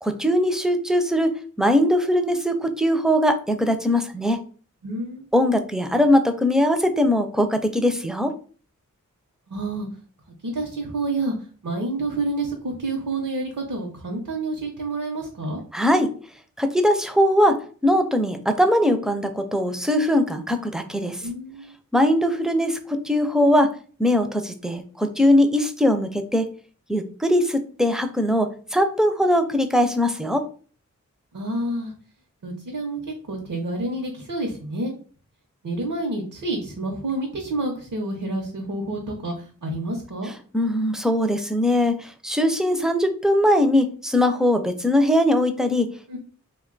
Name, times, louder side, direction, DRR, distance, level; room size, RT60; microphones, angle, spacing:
voice 1, 0.0-4.4 5.3-8.3 15.7-16.1 16.6-21.2 21.9-22.8 23.0-23.7 24.0-26.5 26.9-30.5 40.5-45.9, left 1 dB, ahead, 7 dB, 0.4 m, -21 dB
voice 2, 4.8-5.2 9.5-9.9 10.4-11.4 11.6-15.6 21.2-21.7 31.3-31.9 32.4-34.9 35.6-40.3 46.1-46.2, right 2 dB, 70° right, 0 dB, 0.8 m, -28 dB
2.9 x 2.2 x 3.8 m, 0.41 s
wide cardioid pair, 75°, 31 cm